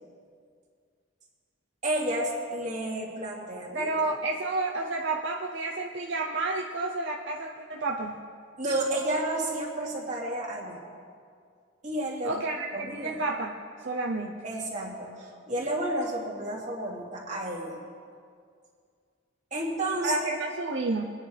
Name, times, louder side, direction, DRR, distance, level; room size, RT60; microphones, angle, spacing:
voice 1, 1.8-3.9 8.6-10.8 11.8-12.4 12.7-13.2 14.4-17.8 19.5-20.1, right 1 dB, 40° right, -4 dB, 2.6 m, -31 dB
voice 2, 3.7-8.2 12.2-12.7 12.9-13.5 13.8-14.4 20.0-21.1, right 2 dB, 65° right, 0 dB, 0.7 m, -30 dB
23.5 x 10.0 x 3.4 m, 2.2 s
head